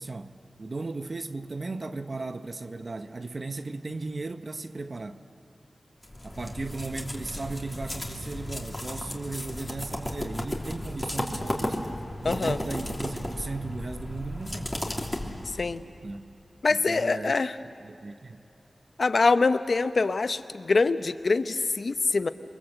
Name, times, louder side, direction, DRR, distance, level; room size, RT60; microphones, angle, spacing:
voice 1, 0.0-5.2 6.2-11.8 12.2-14.8 16.0-16.3 16.7-17.3 17.6-18.4, right 3 dB, 55° right, 0.9 m, -36 dB
sound 1, 6.0-15.8, left 1 dB, 25° left, 2.9 m, -34 dB
voice 2, 12.2-12.6 15.6-15.8 16.6-17.6 19.0-22.3, left 3 dB, 65° left, 0.8 m, -24 dB
28.0 x 23.0 x 8.0 m
wide cardioid pair, 55°, 0 cm